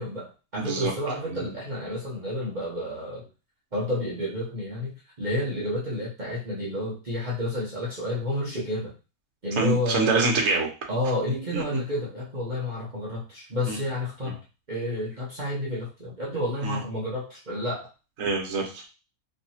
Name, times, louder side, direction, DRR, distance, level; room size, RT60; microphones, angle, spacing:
voice 1, 0.0-3.3 3.7-8.9 9.4-10.3 10.9-14.4 14.7-17.9, left 1 dB, 35° right, -7 dB, 0.9 m, -30 dB
voice 2, 0.6-0.9 1.3-1.5 9.6-10.7 11.5-11.8 13.7-13.8 16.6-16.8 18.2-18.8, right 3 dB, 65° right, 0 dB, 1.2 m, -25 dB
3.2 x 2.8 x 2.7 m, 0.31 s
omnidirectional pair, 1.6 m